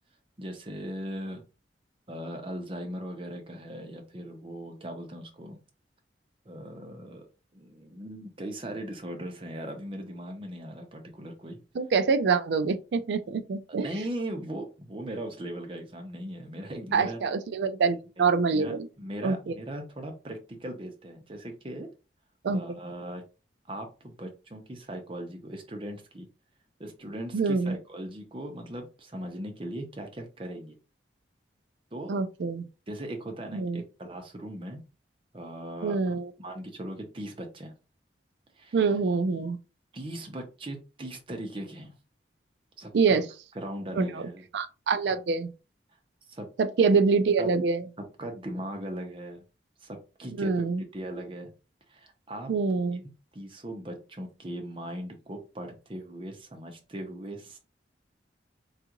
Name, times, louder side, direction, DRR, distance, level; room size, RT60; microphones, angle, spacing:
voice 1, 0.4-1.4 2.1-5.6 6.5-7.3 7.5-11.6 13.7-17.3 18.2-21.9 22.5-23.2 23.7-26.3 26.8-30.8 31.9-32.1 32.9-34.8 35.3-37.7 38.6-38.8 39.9-41.9 42.8-43.2 43.5-44.4 46.3-46.5 47.4-47.6 48.0-49.4 49.8-51.5 51.9-52.5 53.3-57.6, right 1 dB, 30° right, 0.7 m, -39 dB
voice 2, 11.8-13.9 16.9-18.9 19.2-19.5 22.4-22.6 27.3-27.8 32.1-32.7 33.5-33.8 35.8-36.3 38.7-39.6 42.9-43.2 44.0-44.2 44.5-45.5 46.6-47.8 50.4-50.8 52.5-53.0, right 4 dB, 70° right, 0.4 m, -25 dB
3.6 x 2.4 x 2.9 m
head